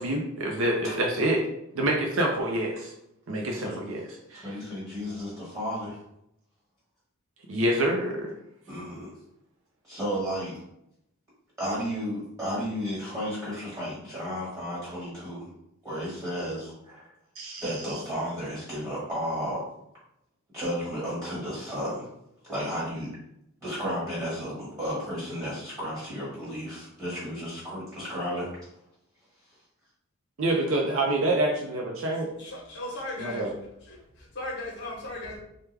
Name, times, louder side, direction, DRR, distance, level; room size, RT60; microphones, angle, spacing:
voice 1, 0.0-1.4 1.7-2.9 3.3-4.5 7.5-8.3 17.4-17.6 30.4-32.3 33.2-33.5, right 1 dB, 65° right, 0 dB, 0.5 m, -27 dB
voice 2, 3.5-3.8 4.3-6.0 8.7-9.1 9.8-10.5 11.6-15.5 15.8-17.1 17.6-19.6 20.5-22.1 22.4-23.1 23.6-28.5, equal, 15° right, -8 dB, 1.4 m, -33 dB
voice 3, 32.4-33.5 33.8-35.4, left 1 dB, 50° left, -2 dB, 1.0 m, -37 dB
3.3 x 2.2 x 3.3 m, 0.79 s
head